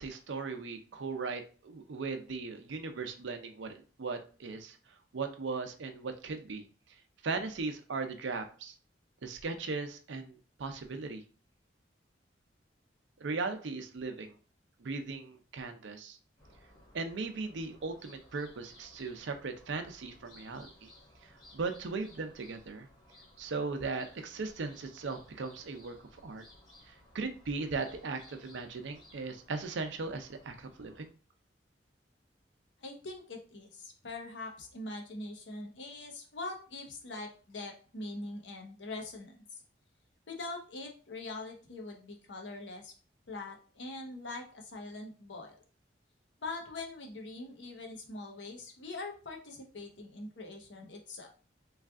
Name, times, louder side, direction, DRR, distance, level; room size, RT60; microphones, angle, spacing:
voice 1, 0.0-6.6 7.2-8.7 9.2-11.2 13.2-14.4 14.8-16.2 16.9-20.9 21.2-22.9 23.4-26.0 26.2-26.4 26.9-31.1, right 4 dB, 85° right, 6 dB, 0.5 m, -38 dB
sound 1, 16.4-31.1, left 1 dB, 25° left, 1.0 m, -59 dB
voice 2, 32.8-39.4 40.3-42.9 43.3-45.6 46.4-51.3, left 2 dB, 80° left, 2 dB, 0.8 m, -43 dB
3.2 x 2.4 x 3.5 m, 0.37 s
head